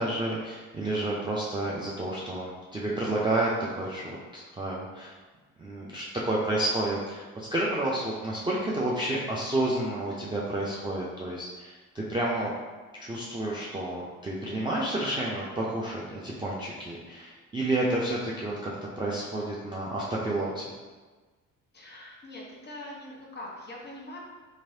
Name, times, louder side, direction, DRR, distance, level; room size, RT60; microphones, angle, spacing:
voice 1, 0.0-5.2 5.6-12.5 13.0-20.7, right 1 dB, 10° right, -6 dB, 0.4 m, -30 dB
voice 2, 21.7-24.2, left 1 dB, 25° left, -3 dB, 0.9 m, -43 dB
3.0 x 2.5 x 2.7 m, 1.3 s
hypercardioid pair, 55°, 42 cm